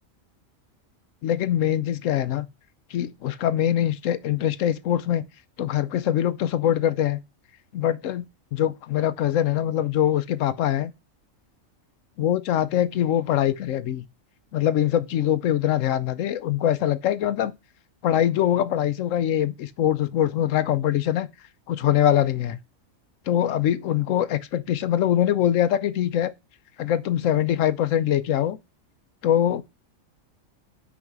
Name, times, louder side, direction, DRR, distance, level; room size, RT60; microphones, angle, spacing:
voice 1, 1.2-2.5 2.9-5.2 5.6-7.2 7.7-8.2 8.5-10.9 12.2-14.1 14.5-17.5 18.0-21.3 21.7-22.6 23.3-26.3 26.8-28.6 29.2-29.6, left 11 dB, 75° left, 1.0 m, -23 dB
5.8 x 5.1 x 4.7 m
omnidirectional pair, 1.4 m